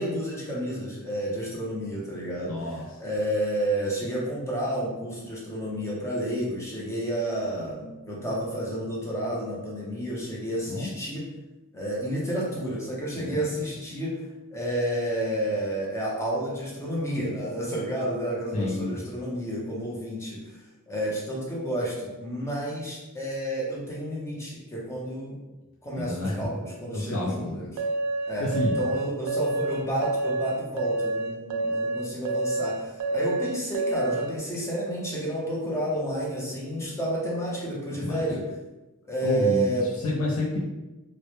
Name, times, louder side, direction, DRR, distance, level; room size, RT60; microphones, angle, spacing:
voice 1, 0.0-2.5 3.0-11.2 11.7-14.1 14.5-20.4 20.9-25.4 25.8-27.7 28.3-28.5 28.8-38.4 39.0-39.8, right 1 dB, 15° left, -5 dB, 0.5 m, -30 dB
voice 2, 2.5-2.9 10.7-10.9 13.2-13.6 18.5-19.1 25.9-26.5 26.9-27.6 28.4-28.8 38.0-38.3 39.2-40.6, left 2 dB, 85° left, -4 dB, 0.4 m, -29 dB
sound 1, 27.8-34.3, right 2 dB, 90° right, 0.3 m, -28 dB
2.0 x 2.0 x 2.9 m, 1.1 s
head